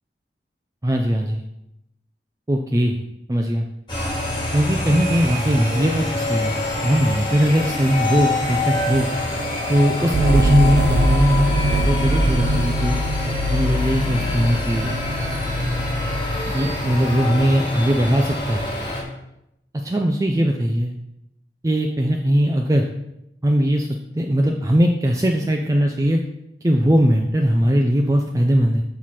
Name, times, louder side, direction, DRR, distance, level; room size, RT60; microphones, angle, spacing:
voice 1, 0.8-1.4 2.5-3.0 3.3-3.6 4.5-9.1 9.7-11.5 11.8-12.9 13.5-14.9 16.4-18.7 19.8-20.9 21.6-22.9 23.4-23.9 24.1-26.2 26.6-28.8, equal, 20° right, 2 dB, 0.4 m, -20 dB
sound 1, 3.9-19.0, left 1 dB, 25° left, 1.6 m, -26 dB
sound 2, 10.1-16.9, equal, 80° right, 0.6 m, -22 dB
5.9 x 5.7 x 4.8 m, 0.84 s
head